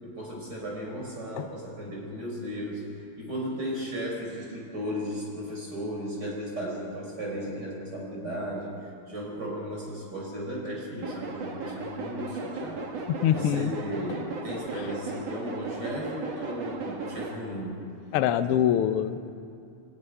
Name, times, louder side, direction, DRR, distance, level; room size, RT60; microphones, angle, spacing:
voice 1, 0.0-17.8 18.4-18.7, equal, 30° right, -2 dB, 5.6 m, -35 dB
sound 1, 11.0-17.4, right 3 dB, 50° right, 2.9 m, -36 dB
voice 2, 13.1-13.7 18.1-19.4, left 10 dB, 90° left, 9 dB, 1.2 m, -24 dB
26.0 x 12.0 x 10.0 m, 2.6 s
omnidirectional pair, 3.8 m